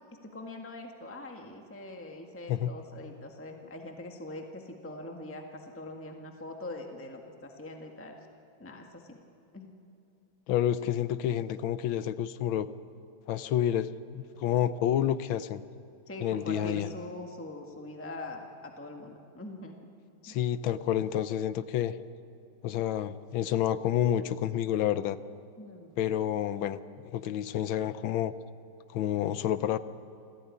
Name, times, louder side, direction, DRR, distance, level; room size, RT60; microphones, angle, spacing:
voice 1, 0.1-8.1 8.6-9.2 9.5-9.7 16.1-19.8 20.3-20.4 25.6-25.9, left 2 dB, 5° left, 3 dB, 1.6 m, -43 dB
voice 2, 10.5-12.7 13.3-15.6 16.2-16.9 20.2-21.9 22.6-25.2 26.0-26.8 27.1-28.3 28.9-29.8, left 10 dB, 80° left, 14 dB, 1.6 m, -29 dB
26.5 x 16.0 x 9.8 m, 2.7 s
omnidirectional pair, 2.2 m